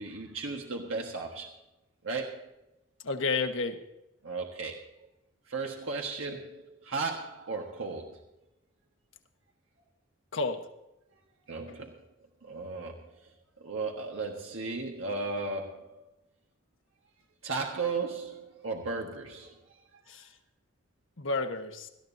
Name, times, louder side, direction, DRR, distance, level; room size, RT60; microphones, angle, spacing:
voice 1, 0.0-1.5 2.0-2.5 4.2-4.9 5.5-8.2 11.5-11.9 12.4-13.1 13.6-16.0 17.4-19.6 19.9-20.0, right 3 dB, 90° right, 1 dB, 1.4 m, -35 dB
voice 2, 3.0-3.8 10.3-10.6 20.1-20.3 21.2-21.9, left 3 dB, 80° left, 6 dB, 1.3 m, -30 dB
18.0 x 13.5 x 2.7 m, 0.90 s
head